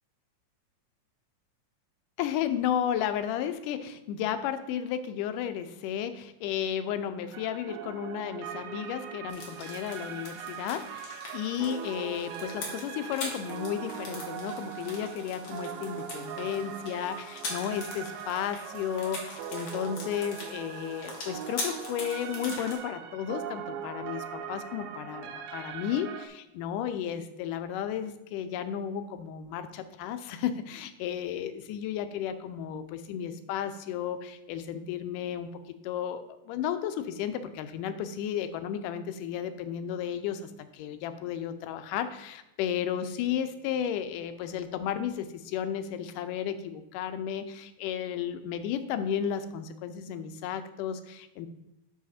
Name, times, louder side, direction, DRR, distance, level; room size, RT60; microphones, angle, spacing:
voice 1, 2.2-51.5, left 9 dB, 85° left, 10 dB, 2.2 m, -33 dB
sound 1, 7.3-26.3, right 8 dB, 80° right, 1.9 m, -41 dB
sound 2, 9.3-22.8, left 2 dB, 55° left, 2.5 m, -42 dB
7.3 x 6.3 x 4.2 m, 0.92 s
omnidirectional pair, 3.7 m